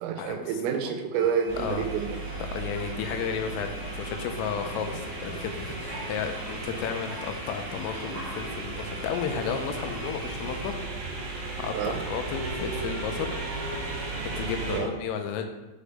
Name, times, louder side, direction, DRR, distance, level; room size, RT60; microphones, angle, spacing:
voice 1, 0.0-2.2 11.7-12.0 14.7-14.9, right 7 dB, 85° right, 5 dB, 3.3 m, -28 dB
sound 1, 1.1-10.7, left 1 dB, 65° left, 2.1 m, -46 dB
sound 2, 1.5-14.8, right 2 dB, 60° right, 3.2 m, -35 dB
voice 2, 2.5-10.8 11.1-11.2 11.6-13.4 14.2-15.5, left 7 dB, 90° left, 5 dB, 3.3 m, -33 dB
8.3 x 5.0 x 3.4 m, 1.1 s
omnidirectional pair, 5.9 m